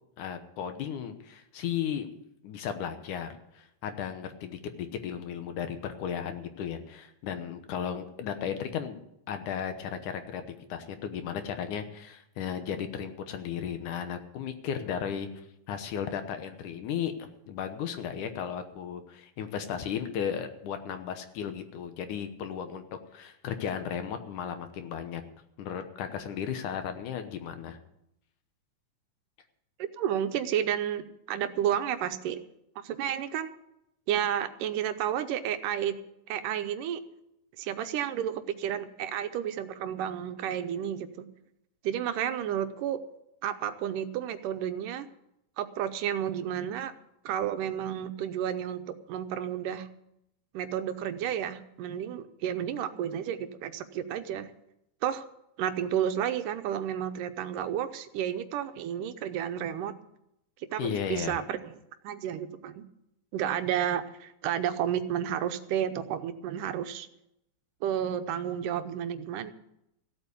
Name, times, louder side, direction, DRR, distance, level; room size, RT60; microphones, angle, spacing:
voice 1, 0.2-2.1 2.4-9.0 9.3-10.4 10.7-15.3 15.7-22.8 23.1-25.2 25.6-27.8 60.8-61.4, left 8 dB, 70° left, 8 dB, 2.5 m, -35 dB
voice 2, 29.8-32.4 32.8-33.5 34.1-36.0 36.3-37.0 37.6-41.3 41.8-43.0 43.4-45.1 45.6-46.9 47.3-49.9 50.5-54.5 55.0-55.2 55.6-59.9 60.7-61.7 62.0-62.8 63.3-67.1 67.8-69.5, right 10 dB, 80° right, 9 dB, 2.3 m, -31 dB
15.5 x 8.1 x 8.2 m, 0.81 s
omnidirectional pair, 3.9 m